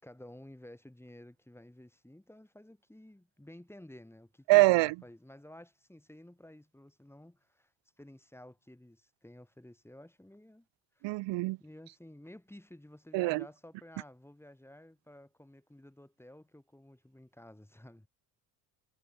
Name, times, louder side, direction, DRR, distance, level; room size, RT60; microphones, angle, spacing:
voice 1, 0.0-7.7 8.0-10.7 10.9-11.2 11.6-18.1, left 1 dB, 5° left, 4.8 m, -53 dB
voice 2, 4.5-4.9 11.0-11.6 13.1-13.4, right 22 dB, 75° right, 0.9 m, -24 dB
supercardioid pair, 85°, 44 cm